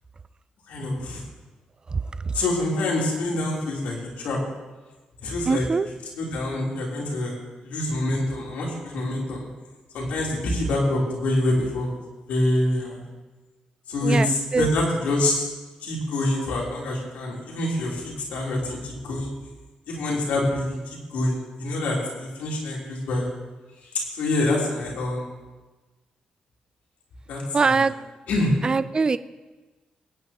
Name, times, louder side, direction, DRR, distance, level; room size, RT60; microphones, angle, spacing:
voice 1, 0.7-1.2 2.3-4.4 5.2-5.7 6.2-7.3 7.6-9.5 9.9-11.9 12.3-13.0 13.9-15.5 15.8-19.3 19.9-23.3 24.1-25.3 27.3-27.9 28.3-28.5, left 1 dB, 85° left, -3 dB, 3.6 m, -26 dB
voice 2, 5.5-5.9 14.0-14.7 27.5-27.9 28.6-29.2, right 4 dB, 35° right, 14 dB, 0.4 m, -22 dB
22.5 x 9.6 x 3.0 m, 1.2 s
cardioid pair, 80°, 3 cm